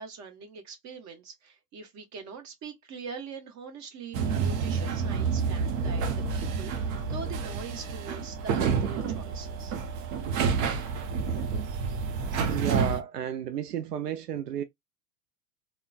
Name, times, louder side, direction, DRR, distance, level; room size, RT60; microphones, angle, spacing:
voice 1, 0.0-9.8, right 5 dB, 35° right, 1.3 m, -43 dB
sound 1, 4.1-13.0, right 5 dB, 60° right, 0.9 m, -29 dB
voice 2, 12.5-14.6, right 8 dB, 80° right, 0.6 m, -32 dB
3.6 x 2.3 x 2.3 m
figure-of-eight pair, 90°, 46 cm